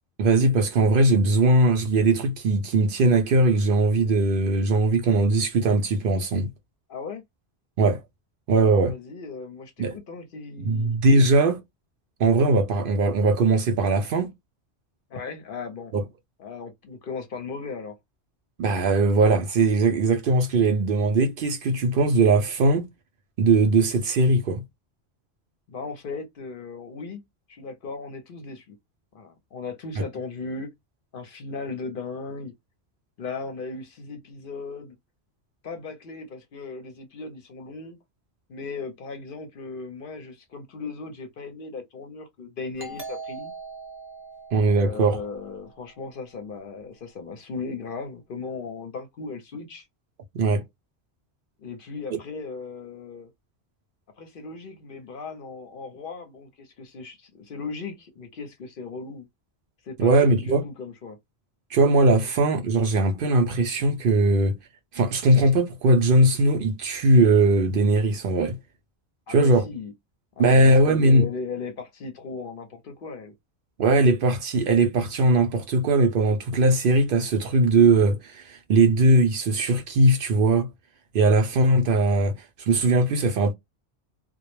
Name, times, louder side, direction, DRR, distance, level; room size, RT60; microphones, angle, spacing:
voice 1, 0.2-6.5 7.8-8.0 8.5-8.9 9.8-9.9 10.6-11.6 12.2-14.3 15.9-16.0 18.6-22.9 23.4-24.6 30.0-30.1 44.5-45.2 50.3-50.6 52.1-52.2 60.0-60.6 61.7-64.6 64.9-68.6 69.3-69.7 70.4-71.3 73.8-80.7 81.1-82.3 82.6-83.5, right 2 dB, 60° right, 0.6 m, -20 dB
voice 2, 6.9-7.2 8.6-10.9 15.1-15.9 16.4-18.0 25.7-27.2 27.5-28.7 29.1-30.7 31.1-32.5 33.2-35.0 35.6-38.0 38.5-43.5 44.8-49.8 51.6-53.3 54.2-59.3 59.8-61.2 69.3-69.9 70.4-73.3, left 4 dB, 60° left, 0.8 m, -37 dB
Doorbell, 42.8-46.1, right 3 dB, 15° right, 0.7 m, -41 dB
2.2 x 2.0 x 3.0 m
omnidirectional pair, 1.1 m